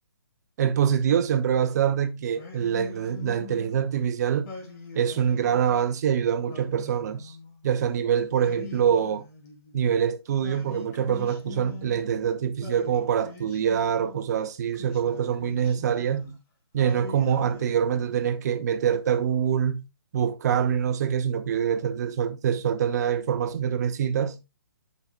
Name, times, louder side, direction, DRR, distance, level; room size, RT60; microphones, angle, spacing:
voice 1, 0.6-4.6 4.9-7.3 7.6-9.2 9.7-16.4 16.7-19.8 20.1-24.4, right 8 dB, 45° right, 0.9 m, -25 dB
Singing, 2.3-3.8 4.4-5.8 6.4-7.7 8.3-9.9 10.4-12.2 12.6-14.2 14.7-16.4 16.8-18.4, left 5 dB, 35° left, 2.5 m, -43 dB
8.0 x 5.4 x 3.4 m
hypercardioid pair, 150°, 13 cm